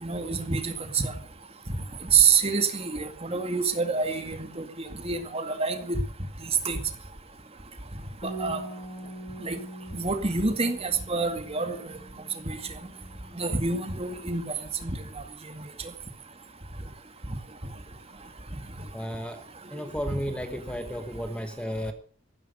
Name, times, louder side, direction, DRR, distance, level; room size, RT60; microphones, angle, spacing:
voice 1, 0.0-1.1 2.1-4.6 5.0-6.0 6.7-6.8 8.2-8.6 9.4-9.6 9.9-11.8 12.5-12.6 13.4-14.4 14.8-15.0, right 5 dB, 25° right, 7 dB, 2.1 m, -26 dB
Bass guitar, 8.2-14.5, right 1 dB, 25° left, 4.3 m, -43 dB
voice 2, 18.9-19.4 19.7-21.9, equal, 5° left, 8 dB, 1.1 m, -33 dB
14.5 x 13.5 x 6.4 m, 0.43 s
head